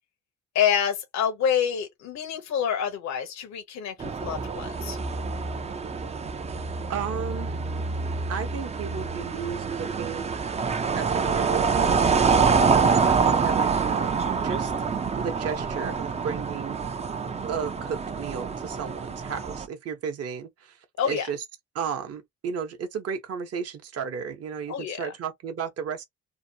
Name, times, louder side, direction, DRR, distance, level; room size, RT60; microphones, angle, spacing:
voice 1, 0.5-5.0 21.0-21.3 24.7-25.1, left 8 dB, 65° left, 0.8 m, -27 dB
sound 1, 4.0-19.7, right 5 dB, 20° right, 0.4 m, -26 dB
voice 2, 6.9-7.6 8.3-10.3 10.9-14.7 15.1-16.9 17.5-20.8 21.0-21.4 21.7-26.0, right 7 dB, 55° right, 0.9 m, -34 dB
2.8 x 2.0 x 2.7 m
cardioid pair, 90°, 30 cm